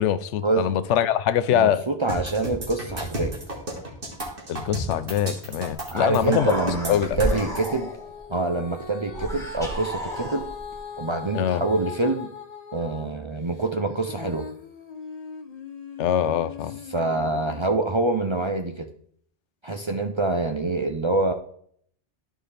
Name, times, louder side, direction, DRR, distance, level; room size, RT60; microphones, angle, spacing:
voice 1, 0.0-1.8 4.5-6.5 6.9-7.4 11.3-11.6 16.0-16.7, left 10 dB, 85° left, 0.9 m, -23 dB
voice 2, 1.5-3.3 5.9-7.9 8.3-10.4 11.0-12.3 12.7-14.4 16.9-18.9 19.6-21.3, right 2 dB, 35° right, 0.5 m, -26 dB
sound 1, 2.1-7.7, right 1 dB, 50° right, 2.0 m, -33 dB
Human voice, 5.8-5.9 6.1-8.2 9.1-10.8, equal, 5° left, 1.6 m, -32 dB
Female singing, 7.2-13.1 13.5-17.8 18.4-18.5, left 5 dB, 40° left, 0.8 m, -40 dB
11.0 x 4.9 x 3.3 m
omnidirectional pair, 1.2 m